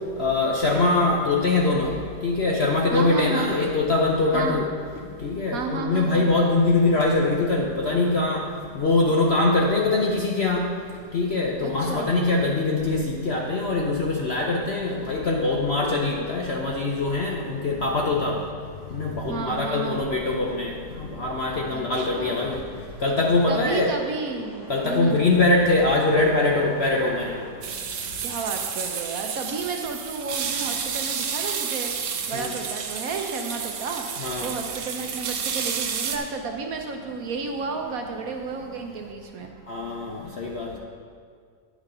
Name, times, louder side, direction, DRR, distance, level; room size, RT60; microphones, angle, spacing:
voice 1, 0.2-1.9 2.2-4.6 5.2-8.4 8.7-10.6 11.1-18.4 18.9-22.6 23.0-23.9 24.7-27.3 32.3-32.5 34.2-34.5 39.7-40.8, left 2 dB, 55° left, -1 dB, 0.7 m, -23 dB
voice 2, 2.9-3.5 4.3-4.6 5.5-6.3 11.6-12.1 18.4-18.5 19.3-20.0 21.7-22.5 23.5-25.3 28.2-32.0 32.3-34.1 34.4-39.5, right 4 dB, 65° right, 3 dB, 1.0 m, -32 dB
sound 1, 22.2-27.5, equal, 75° left, 3.3 m, -45 dB
sound 2, 27.6-36.2, right 7 dB, 80° right, 1.4 m, -31 dB
9.9 x 6.1 x 5.4 m, 2.1 s
omnidirectional pair, 1.9 m